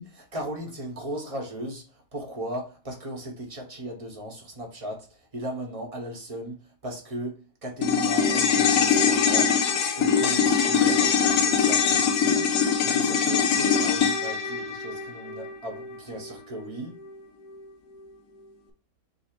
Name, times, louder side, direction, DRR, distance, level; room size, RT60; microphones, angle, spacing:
voice 1, 0.0-1.8 2.1-5.1 5.3-9.5 9.9-12.5 12.8-17.0, right 1 dB, 25° right, 0.8 m, -36 dB
sound 1, 7.8-16.3 16.6-16.7, left 6 dB, 65° left, 1.0 m, -23 dB
5.3 x 2.1 x 4.4 m
omnidirectional pair, 2.0 m